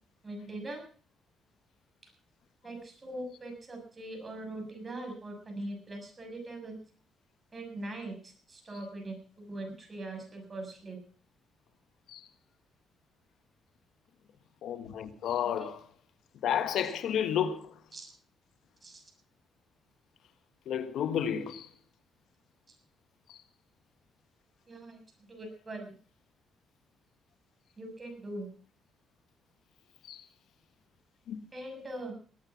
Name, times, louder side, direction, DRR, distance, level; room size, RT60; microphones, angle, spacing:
voice 1, 0.2-0.8 2.0-2.1 2.6-6.8 7.5-11.0 15.4-15.7 16.8-16.9 17.9-18.1 18.8-19.0 22.7-22.8 24.7-25.0 25.3-25.9 27.8-28.5 31.5-32.1, right 1 dB, 30° right, 7.0 m, -41 dB
voice 2, 14.6-15.8 16.4-17.7 20.7-21.7 30.1-30.2 31.3-31.4, left 9 dB, 75° left, 1.6 m, -31 dB
20.0 x 9.0 x 5.9 m
cardioid pair, 90°, 0 cm